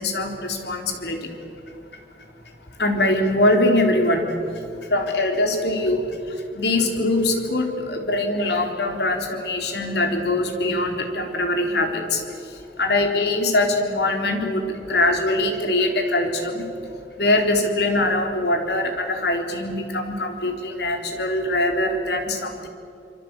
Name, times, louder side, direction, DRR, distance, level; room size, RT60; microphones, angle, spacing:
voice 1, 0.0-1.3 2.8-16.7 17.2-22.7, left 2 dB, 65° left, 4 dB, 3.8 m, -23 dB
26.0 x 24.5 x 8.2 m, 2.6 s
head